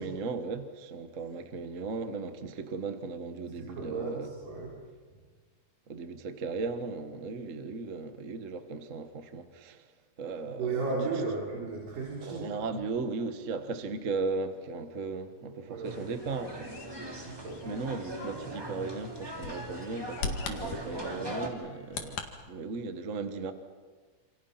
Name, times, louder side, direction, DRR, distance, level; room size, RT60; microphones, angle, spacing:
voice 1, 0.0-4.3 5.9-9.8 10.2-10.9 12.2-23.5, right 4 dB, 45° right, 0.9 m, -37 dB
voice 2, 3.5-4.7 10.6-12.5 15.7-16.1 17.4-17.6, right 3 dB, 75° right, 6.1 m, -34 dB
sound 1, 15.8-21.5, right 1 dB, 5° right, 3.0 m, -40 dB
Bird vocalization bird call bird song, 16.2-22.3, left 5 dB, 75° left, 3.5 m, -42 dB
28.0 x 28.0 x 5.9 m
omnidirectional pair, 3.8 m